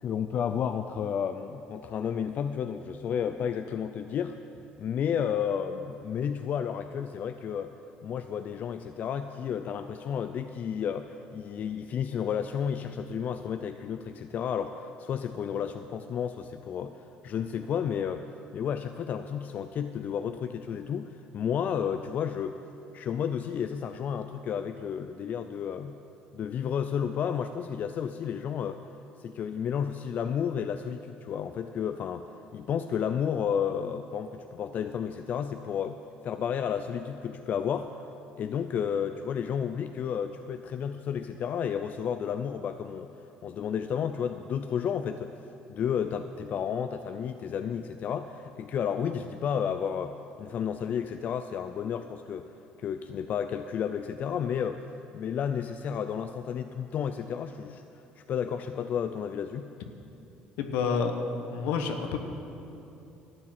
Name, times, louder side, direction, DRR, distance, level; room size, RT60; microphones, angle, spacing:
voice 1, 0.0-4.4 4.8-7.7 8.0-18.2 18.5-22.6 22.9-26.0 26.3-28.8 29.2-32.3 32.5-36.0 36.2-38.1 38.4-43.1 43.4-45.3 45.7-52.5 52.8-54.8 55.1-57.8 58.2-59.7, left 8 dB, 55° left, 8 dB, 0.5 m, -32 dB
voice 2, 60.6-61.1 61.5-62.2, left 6 dB, 80° left, 5 dB, 1.2 m, -28 dB
12.0 x 9.0 x 7.5 m, 2.8 s
supercardioid pair, 80°, 3 cm